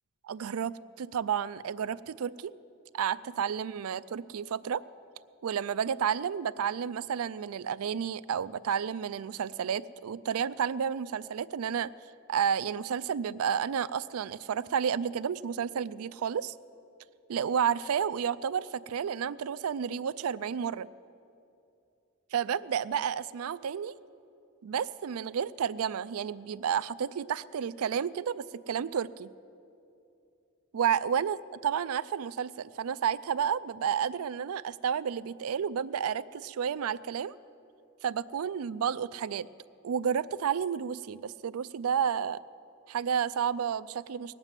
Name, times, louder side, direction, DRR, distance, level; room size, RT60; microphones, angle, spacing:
voice 1, 0.2-2.5 2.9-4.8 5.4-11.9 12.3-16.5 17.3-20.9 22.3-23.9 24.6-29.3 30.7-37.3 38.0-39.5 39.8-42.4 42.9-44.4, right 8 dB, 80° right, 18 dB, 0.4 m, -31 dB
19.0 x 7.5 x 9.0 m, 2.7 s
head